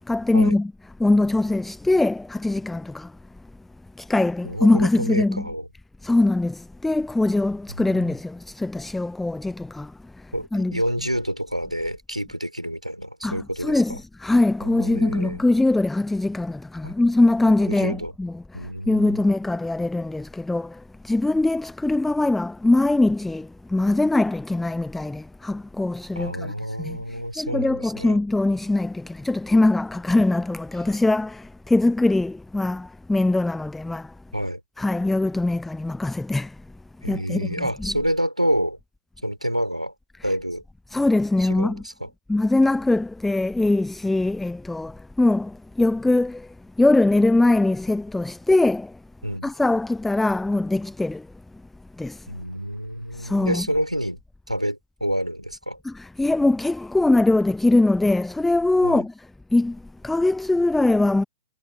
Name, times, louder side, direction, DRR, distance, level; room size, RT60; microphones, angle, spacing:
voice 1, 0.1-0.7 1.0-3.2 4.0-5.5 6.0-10.8 13.2-34.2 34.8-36.7 37.0-37.5 40.9-41.8 42.3-49.0 49.4-51.3 52.0-52.3 53.1-53.7 55.8-59.1 59.5-61.2, left 2 dB, 5° left, 0.5 m, -22 dB
voice 2, 4.4-5.7 7.7-8.0 10.3-14.0 14.6-15.4 16.8-16.9 17.7-18.1 18.5-19.2 26.1-28.2 34.3-34.6 37.0-38.8 39.2-39.9 40.2-40.6 41.4-42.1 49.2-49.5 52.3-54.2 54.5-55.8 58.8-59.0, equal, 90° right, 4.8 m, -28 dB
figure-of-eight pair, 105°, 4 cm